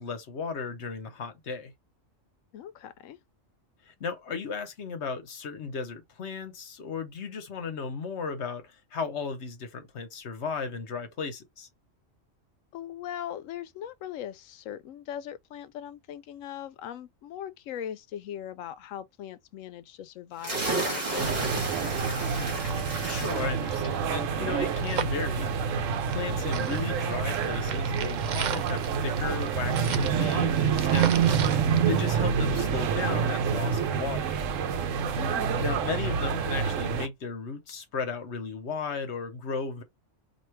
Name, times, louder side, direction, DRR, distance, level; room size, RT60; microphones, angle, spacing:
voice 1, 0.0-1.7 3.8-11.7 23.0-25.5 26.1-34.4 35.6-39.8, left 5 dB, 65° left, 1.2 m, -35 dB
voice 2, 2.5-3.2 12.7-22.2 35.2-35.6, left 10 dB, 85° left, 1.0 m, -40 dB
sound 1, 20.4-33.7, right 2 dB, 35° right, 1.5 m, -38 dB
sound 2, 21.2-37.1, right 6 dB, 80° right, 1.0 m, -27 dB
sound 3, 22.4-22.5 22.7-22.8 23.1-26.3 26.5-32.6 33.0-33.1, right 8 dB, 65° right, 0.4 m, -37 dB
3.1 x 2.7 x 4.4 m
omnidirectional pair, 1.3 m